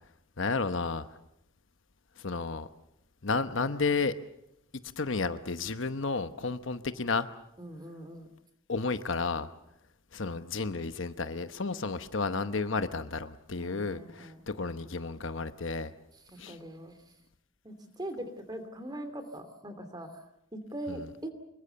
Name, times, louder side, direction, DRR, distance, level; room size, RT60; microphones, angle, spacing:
voice 1, 0.4-1.1 2.2-2.7 3.2-4.1 5.0-7.3 8.7-9.5 10.1-15.9 16.4-16.6 20.9-21.1, left 4 dB, 60° left, 10 dB, 1.0 m, -32 dB
voice 2, 7.6-8.3 13.6-14.4 16.3-17.0 17.6-20.2 20.5-21.3, right 1 dB, 20° right, 9 dB, 2.8 m, -41 dB
25.5 x 22.5 x 6.9 m, 0.81 s
head